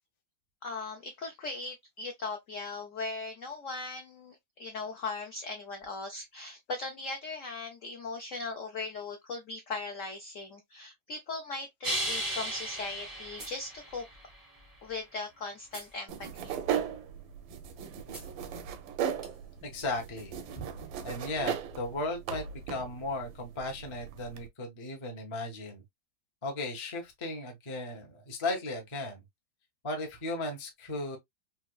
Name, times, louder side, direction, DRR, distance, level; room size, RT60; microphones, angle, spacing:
voice 1, 0.6-14.0 14.8-16.5, left 3 dB, 70° left, 0.7 m, -39 dB
sound 1, 11.8-14.6 15.7-15.9 18.1-18.2 19.2-19.3, right 1 dB, 20° right, 0.5 m, -36 dB
sound 2, 16.1-24.5, right 8 dB, 85° right, 1.4 m, -37 dB
voice 2, 19.6-20.7 21.0-25.8 26.4-29.2 29.8-31.2, left 2 dB, 35° left, 0.4 m, -36 dB
4.1 x 2.3 x 2.3 m
omnidirectional pair, 2.1 m